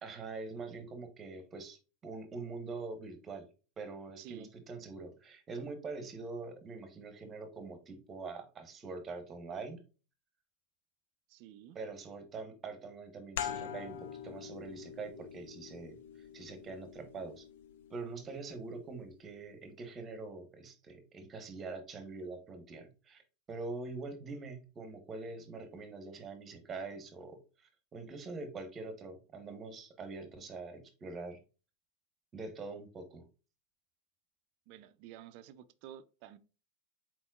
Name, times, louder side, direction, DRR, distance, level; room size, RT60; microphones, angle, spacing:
voice 1, 0.0-3.5 3.8-9.8 11.7-17.4 17.9-23.2 23.5-31.4 32.3-33.3, right 3 dB, 30° right, 1.1 m, -44 dB
voice 2, 4.2-4.5 11.3-11.8 34.7-36.4, right 11 dB, 60° right, 0.4 m, -51 dB
sound 1, 13.4-18.6, left 9 dB, 75° left, 0.5 m, -44 dB
4.3 x 4.2 x 2.4 m
hypercardioid pair, 105°, 0 cm